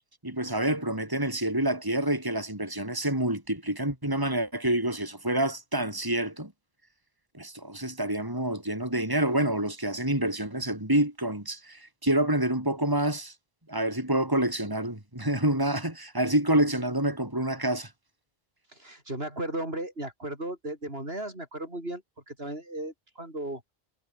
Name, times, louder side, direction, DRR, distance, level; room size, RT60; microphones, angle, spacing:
voice 1, 0.2-6.5 7.4-13.3 13.7-17.9, right 1 dB, 20° right, 4.5 m, -27 dB
voice 2, 18.7-22.0 22.3-23.6, right 1 dB, 65° right, 7.1 m, -35 dB
omnidirectional pair, 1.1 m